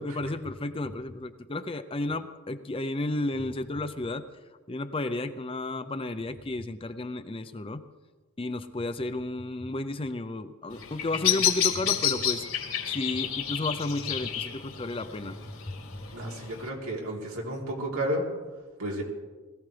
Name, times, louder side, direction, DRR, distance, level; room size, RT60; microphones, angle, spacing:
voice 1, 0.0-4.2 4.7-7.8 8.4-12.4 12.9-15.4, left 2 dB, 25° left, 10 dB, 0.6 m, -32 dB
Bird vocalization bird call bird song, 10.7-16.7, left 9 dB, 80° left, 2.8 m, -30 dB
voice 2, 16.1-18.2 18.8-19.0, right 1 dB, 90° right, -2 dB, 3.2 m, -32 dB
21.0 x 15.5 x 3.3 m, 1.3 s
head